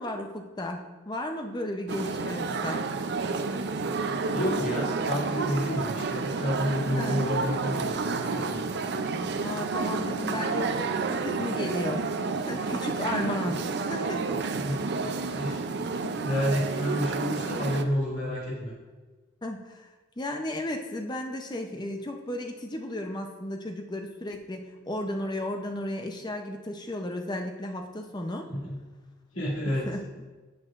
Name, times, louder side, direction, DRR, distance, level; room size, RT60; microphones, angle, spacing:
voice 1, 0.0-2.8 7.0-7.2 9.4-12.1 12.3-14.2 16.0-16.2 19.4-19.9 20.2-28.5 29.8-30.0, left 1 dB, 20° left, 4 dB, 0.6 m, -34 dB
sound 1, 1.9-17.8, right 4 dB, 55° right, 0.4 m, -30 dB
voice 2, 4.1-8.6 13.4-13.5 14.5-15.6 16.0-18.7 28.5-28.8 29.3-29.9, equal, 75° left, -8 dB, 2.5 m, -30 dB
13.5 x 4.8 x 2.5 m, 1.3 s
head